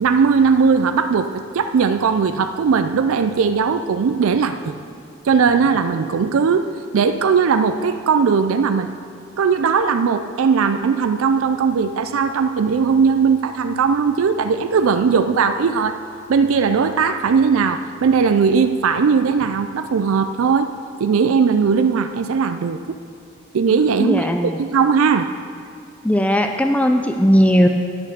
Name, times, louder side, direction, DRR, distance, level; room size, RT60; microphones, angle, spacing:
voice 1, 0.0-4.8 5.2-6.7 6.9-8.9 9.4-16.0 16.3-20.7 21.0-23.0 23.5-25.3, right 5 dB, 70° right, 9 dB, 0.4 m, -18 dB
voice 2, 24.0-24.5 26.0-27.7, equal, 5° left, 5 dB, 0.3 m, -17 dB
10.5 x 6.5 x 6.6 m, 2.3 s
head